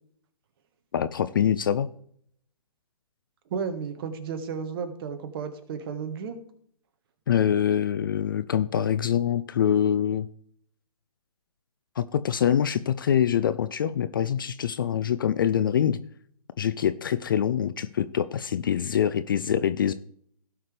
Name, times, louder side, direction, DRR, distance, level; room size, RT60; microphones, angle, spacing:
voice 1, 0.9-1.9 7.3-10.3 12.0-16.0 16.6-19.9, left 9 dB, 35° left, 13 dB, 0.4 m, -24 dB
voice 2, 3.5-6.4, right 6 dB, 35° right, 9 dB, 1.4 m, -33 dB
17.0 x 5.7 x 3.3 m, 0.63 s
figure-of-eight pair, 140°, 21 cm